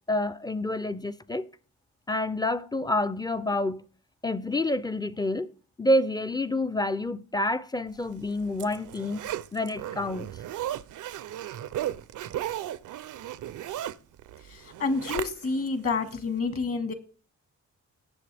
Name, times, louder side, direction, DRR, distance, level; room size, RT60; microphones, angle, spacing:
voice 1, 0.1-1.5 2.1-3.8 4.2-5.5 5.8-9.2 9.5-10.3, left 1 dB, 15° left, 0.4 m, -28 dB
Zipper (clothing), 8.1-15.7 16.1-16.2, right 12 dB, 85° right, 0.6 m, -36 dB
voice 2, 14.5-16.9, left 4 dB, 50° left, 1.7 m, -29 dB
17.5 x 7.1 x 3.4 m
wide cardioid pair, 135°, 30 cm